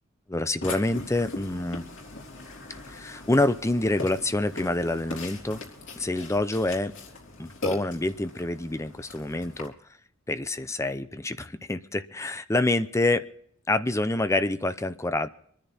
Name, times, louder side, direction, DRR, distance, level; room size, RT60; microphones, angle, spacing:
voice 1, 0.3-1.8 2.9-5.6 6.0-6.9 7.4-9.7 10.3-13.2 13.7-15.3, left 2 dB, 15° left, 12 dB, 0.6 m, -27 dB
Burping eructation, 0.6-9.7, left 2 dB, 65° left, 3.6 m, -40 dB
25.5 x 10.5 x 4.2 m, 0.64 s
head